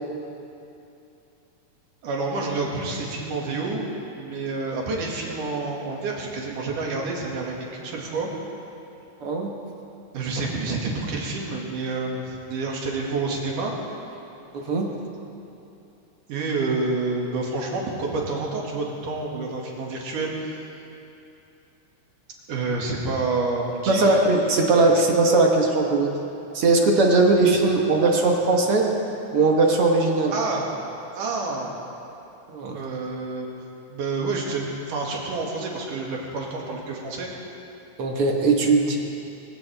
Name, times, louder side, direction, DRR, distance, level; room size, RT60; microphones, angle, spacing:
voice 1, 2.0-3.9 4.2-8.3 10.1-13.7 16.3-20.6 22.5-24.2 30.3-30.7 31.1-31.7 32.7-33.5 33.9-37.3, right 3 dB, 80° right, -2 dB, 3.7 m, -28 dB
voice 2, 9.2-9.5 14.5-14.9 23.9-26.1 26.5-29.0 29.3-30.4 32.5-32.8 38.0-39.0, right 3 dB, 55° right, 1 dB, 2.0 m, -19 dB
23.5 x 16.5 x 3.5 m, 2.8 s
omnidirectional pair, 3.6 m